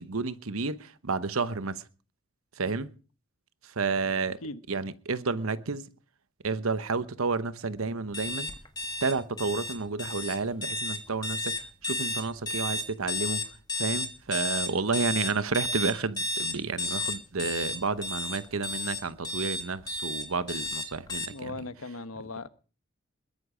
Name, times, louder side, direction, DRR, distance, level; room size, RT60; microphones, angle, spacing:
voice 1, 0.0-1.8 2.6-2.9 3.6-4.4 4.7-5.8 6.4-8.5 9.0-11.6 11.8-13.5 13.7-21.6, right 4 dB, 80° right, 1.0 m, -31 dB
sound 1, 8.1-21.3, left 2 dB, 20° left, 1.8 m, -32 dB
voice 2, 21.2-22.5, left 3 dB, 85° left, 1.2 m, -38 dB
21.5 x 10.5 x 5.0 m
head